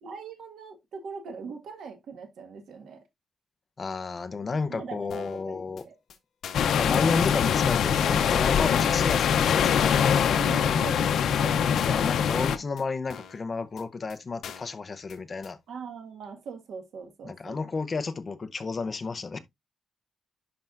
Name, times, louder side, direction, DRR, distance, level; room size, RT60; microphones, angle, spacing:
voice 1, 0.0-3.0 4.7-6.0 10.3-11.7 15.7-17.6, right 5 dB, 85° right, 1.7 m, -41 dB
voice 2, 3.8-5.8 6.8-10.4 11.7-15.6 17.2-19.4, left 4 dB, 30° left, 0.7 m, -32 dB
sound 1, 5.1-5.4 5.8-5.9 6.1-6.2 6.4-6.8 7.1-7.2 7.4-7.5 7.8-8.1 8.4-8.5 8.8-8.9 9.1-9.4 9.8-9.9 10.1-10.2 10.4-10.8 11.1-11.2 11.4-11.5 11.8-12.1 12.4-12.5 12.8-12.9 13.1-13.4 13.8-13.9 14.1-14.2 14.4-14.8 15.1-15.2 15.4-15.5, left 8 dB, 70° left, 1.1 m, -44 dB
sound 2, 6.5-12.6, left 8 dB, 85° left, 0.6 m, -23 dB
11.0 x 4.5 x 2.5 m
wide cardioid pair, 175°, 0 cm